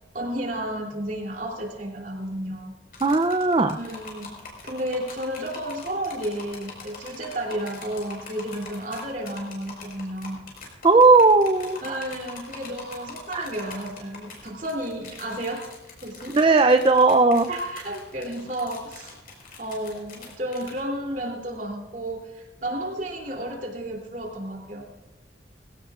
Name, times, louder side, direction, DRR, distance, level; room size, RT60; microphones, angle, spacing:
voice 1, 0.1-2.7 3.7-10.4 11.8-15.7 16.0-16.4 17.5-19.1 19.6-24.9, right 1 dB, 45° right, 0 dB, 3.1 m, -32 dB
sound 1, 2.9-20.8, left 4 dB, 55° left, 4.9 m, -43 dB
voice 2, 3.0-3.8 10.8-12.0 13.3-13.5 16.3-17.5, right 3 dB, 30° right, 7 dB, 0.5 m, -17 dB
21.0 x 17.0 x 2.5 m, 1.0 s
head